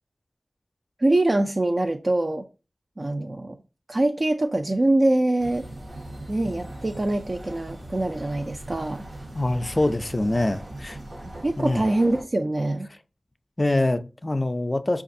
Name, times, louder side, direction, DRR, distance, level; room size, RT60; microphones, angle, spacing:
voice 1, 1.0-2.4 3.0-3.6 3.9-5.6 6.3-9.0 11.4-12.9, right 2 dB, 45° right, 0.3 m, -24 dB
sound 1, 5.4-12.2, right 1 dB, 80° right, 0.9 m, -39 dB
voice 2, 9.3-11.0 11.6-11.8 13.6-15.0, left 2 dB, 35° left, 0.3 m, -24 dB
5.1 x 2.3 x 2.6 m
wide cardioid pair, 50°, 0 cm